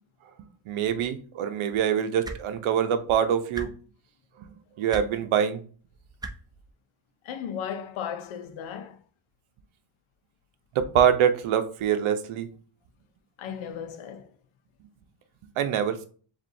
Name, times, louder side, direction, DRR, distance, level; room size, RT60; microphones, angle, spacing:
voice 1, 0.7-3.7 4.4-4.5 4.8-5.6 10.7-12.5 15.6-16.1, right 9 dB, 80° right, 0.8 m, -24 dB
sound 1, 2.2-2.4 3.5-3.7 4.9-5.1 6.2-6.3 7.6-7.7, right 2 dB, 10° right, 0.5 m, -35 dB
voice 2, 7.2-9.0 13.4-14.4, left 8 dB, 80° left, 0.7 m, -36 dB
7.4 x 2.6 x 2.6 m
cardioid pair, 135°, 48 cm